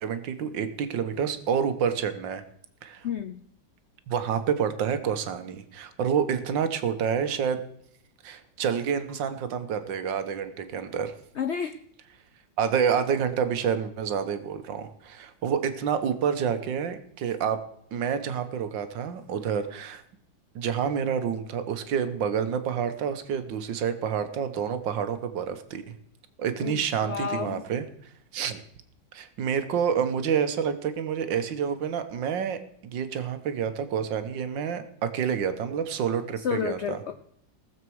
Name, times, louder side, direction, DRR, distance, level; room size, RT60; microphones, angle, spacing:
voice 1, 0.0-2.4 2.8-3.1 4.1-7.6 8.2-11.1 12.6-17.6 17.9-20.0 20.5-26.0 26.4-27.9 28.3-28.6 29.1-37.0, right 7 dB, 80° right, 10 dB, 1.7 m, -28 dB
voice 2, 3.0-3.4 11.4-11.8 26.6-27.6 36.4-37.1, left 7 dB, 85° left, 9 dB, 0.6 m, -31 dB
18.5 x 7.4 x 4.7 m, 0.70 s
omnidirectional pair, 2.0 m